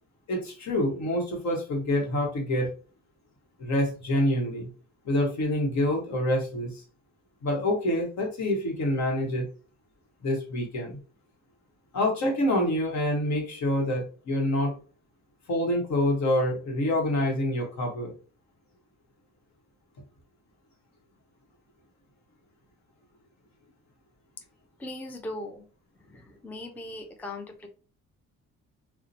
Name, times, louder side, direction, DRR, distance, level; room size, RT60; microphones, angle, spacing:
voice 1, 0.3-2.7 3.6-4.7 5.0-6.8 7.4-9.5 10.2-11.0 11.9-14.8 15.5-18.1, left 1 dB, 65° left, 2 dB, 1.0 m, -26 dB
voice 2, 24.8-25.7 26.0-27.7, left 1 dB, 5° left, 4 dB, 0.4 m, -39 dB
2.7 x 2.1 x 2.5 m, 0.35 s
cardioid pair, 90°, 30 cm